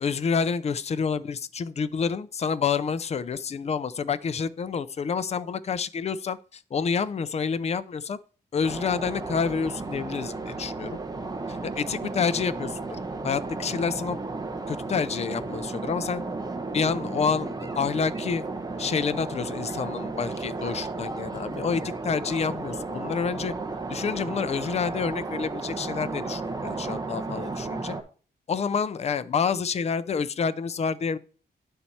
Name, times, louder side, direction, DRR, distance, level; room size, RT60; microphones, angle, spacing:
voice 1, 0.0-8.2 8.5-11.0 11.5-12.8 13.2-14.2 14.7-16.2 16.7-18.4 18.8-23.5 23.9-27.9 28.5-31.2, left 6 dB, 35° left, 0.5 m, -28 dB
sound 1, 8.6-28.0, right 3 dB, 20° right, 1.0 m, -34 dB
10.0 x 4.4 x 4.2 m
wide cardioid pair, 130°, 18 cm